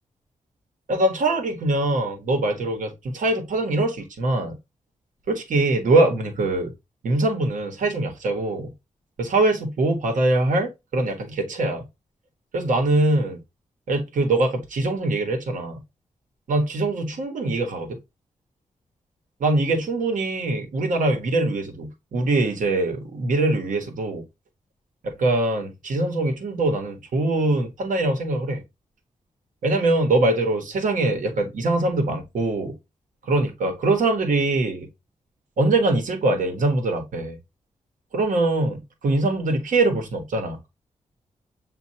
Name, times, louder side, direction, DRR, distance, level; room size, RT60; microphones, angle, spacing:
voice 1, 0.9-4.6 5.3-6.7 7.0-8.7 9.2-11.9 12.5-13.4 13.9-15.8 16.5-18.0 19.4-24.2 25.0-28.6 29.6-32.8 33.3-34.9 35.6-37.4 38.1-40.7, right 2 dB, 85° right, 1.2 m, -23 dB
7.5 x 2.6 x 2.7 m
wide cardioid pair, 100°, 13 cm